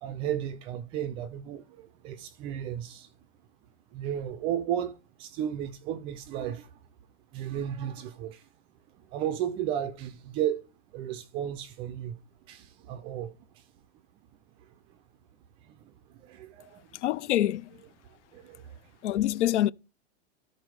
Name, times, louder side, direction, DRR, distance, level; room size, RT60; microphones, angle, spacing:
voice 1, 0.0-3.1 3.9-6.7 7.3-8.4 9.1-10.6 10.9-12.2 12.5-13.3 15.8-15.9 16.2-16.9 18.3-18.8, right 10 dB, 15° right, 0.3 m, -34 dB
voice 2, 17.0-17.7 19.0-19.7, left 13 dB, 90° left, 0.6 m, -25 dB
12.5 x 4.3 x 4.7 m
supercardioid pair, 155°, 34 cm